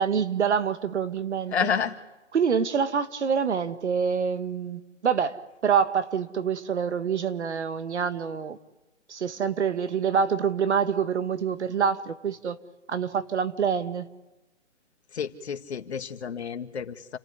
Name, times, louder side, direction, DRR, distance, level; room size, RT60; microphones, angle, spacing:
voice 1, 0.0-1.7 2.3-8.6 9.1-12.6 12.9-14.1, right 6 dB, 65° right, 1.7 m, -26 dB
voice 2, 1.5-1.9 15.1-17.2, left 6 dB, 60° left, 1.8 m, -30 dB
29.0 x 16.0 x 9.6 m
hypercardioid pair, 165°, 37 cm